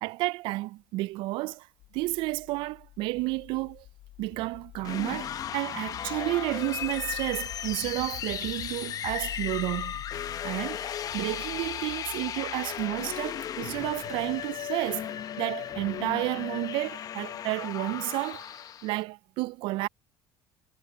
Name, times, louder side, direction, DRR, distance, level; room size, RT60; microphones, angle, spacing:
voice 1, 0.0-1.7 1.9-3.8 4.2-18.5 18.8-19.9, right 21 dB, 70° right, 0.4 m, -31 dB
sound 1, 1.8-15.0, left 15 dB, 70° left, 1.5 m, -47 dB
sound 2, 4.8-19.0, left 10 dB, 45° left, 0.8 m, -36 dB
cardioid pair, 110°, 9 cm